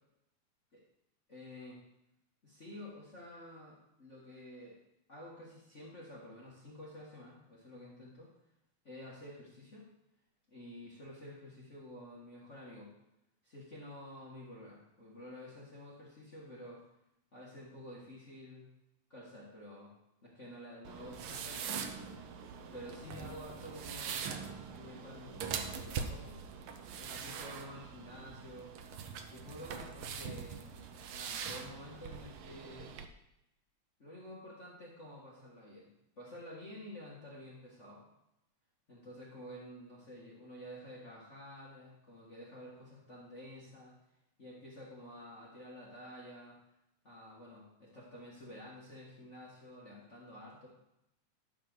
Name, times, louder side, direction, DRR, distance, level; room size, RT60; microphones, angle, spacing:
voice 1, 1.3-1.8 2.4-4.8 5.1-8.3 8.8-9.9 10.5-12.9 13.4-16.8 17.3-18.7 19.1-19.9 20.2-22.2 22.7-25.5 25.7-26.4 27.0-28.8 29.3-30.6 31.1-32.9 34.0-38.0 38.9-44.0 44.4-46.6 47.0-50.7, left 1 dB, 30° left, -5 dB, 1.6 m, -50 dB
sound 1, 20.8-33.1, right 6 dB, 85° right, 1.2 m, -43 dB
12.0 x 4.7 x 6.2 m, 0.85 s
omnidirectional pair, 3.3 m